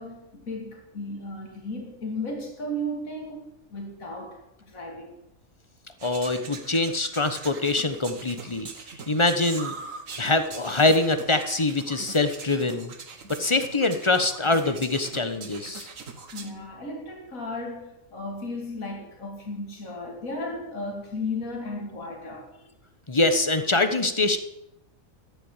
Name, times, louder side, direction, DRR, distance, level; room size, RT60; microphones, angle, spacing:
voice 1, 0.0-5.2 16.3-22.5, left 1 dB, 75° left, 3.0 m, -35 dB
voice 2, 6.0-8.7 9.1-9.7 10.2-12.9 13.3-15.9 23.1-24.4, left 2 dB, 25° left, 1.1 m, -24 dB
sound 1, 6.0-16.5, right 4 dB, 70° right, 1.9 m, -42 dB
14.0 x 11.0 x 7.3 m
omnidirectional pair, 1.5 m